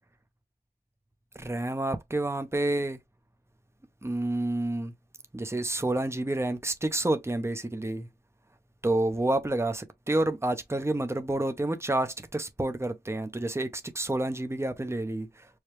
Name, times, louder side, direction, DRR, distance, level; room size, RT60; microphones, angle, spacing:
voice 1, 1.3-3.0 4.0-4.9 5.3-8.1 8.8-15.5, right 2 dB, 15° right, 0.6 m, -29 dB
4.8 x 2.3 x 3.1 m
wide cardioid pair, 50°, 17 cm